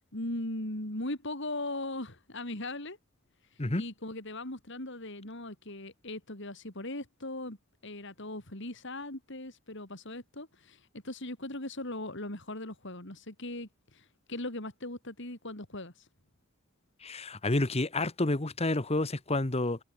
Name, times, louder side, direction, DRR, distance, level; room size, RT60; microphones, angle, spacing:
voice 1, 0.1-3.0 3.7-7.6 7.8-16.1, left 1 dB, 60° left, 5.4 m, -39 dB
voice 2, 17.0-19.8, left 2 dB, 30° left, 1.3 m, -29 dB
head